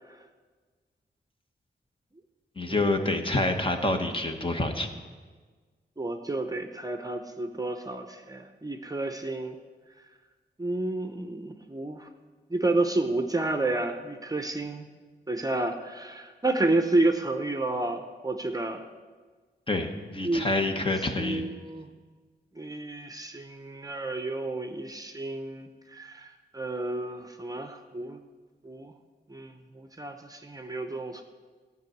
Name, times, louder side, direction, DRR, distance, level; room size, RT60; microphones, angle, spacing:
voice 1, 2.6-4.9 19.7-21.4, left 2 dB, 30° left, 5 dB, 1.2 m, -27 dB
voice 2, 6.0-9.6 10.6-12.1 12.5-14.9 15.3-18.8 20.2-20.5 21.2-21.9 22.6-28.2 28.6-28.9 29.3-31.2, right 2 dB, 20° right, 6 dB, 0.8 m, -30 dB
15.5 x 5.4 x 9.3 m, 1.4 s
wide cardioid pair, 120°, 18 cm